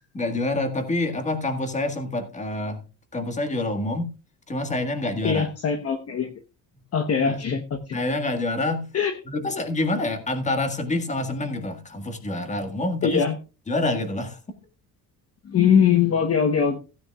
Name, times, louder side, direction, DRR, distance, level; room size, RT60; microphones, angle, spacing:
voice 1, 0.1-2.8 3.1-4.0 4.5-5.5 7.3-7.4 7.9-8.8 9.3-13.3 13.7-14.4, left 2 dB, 20° left, 7 dB, 1.8 m, -27 dB
voice 2, 5.2-6.3 6.9-8.0 8.9-9.1 13.0-13.4 15.4-16.8, left 7 dB, 40° left, 7 dB, 1.1 m, -21 dB
16.0 x 9.5 x 2.4 m, 0.31 s
cardioid pair, 145°, 38 cm